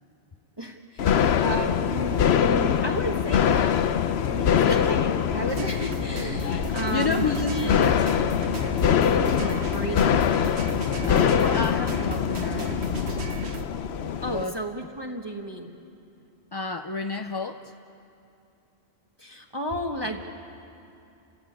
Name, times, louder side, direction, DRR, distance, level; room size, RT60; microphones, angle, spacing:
voice 1, 0.6-7.9 9.1-10.1 14.2-15.7 19.2-20.2, equal, 20° right, 1 dB, 1.3 m, -33 dB
sound 1, 1.0-14.4, left 8 dB, 70° left, 0.9 m, -24 dB
voice 2, 4.6-5.0 6.9-8.0 11.1-12.7 14.3-14.5 16.5-17.7, left 4 dB, 35° left, 6 dB, 0.4 m, -30 dB
sound 2, 5.5-13.7, right 4 dB, 70° right, 1.5 m, -36 dB
30.0 x 14.5 x 8.7 m, 2.7 s
omnidirectional pair, 1.2 m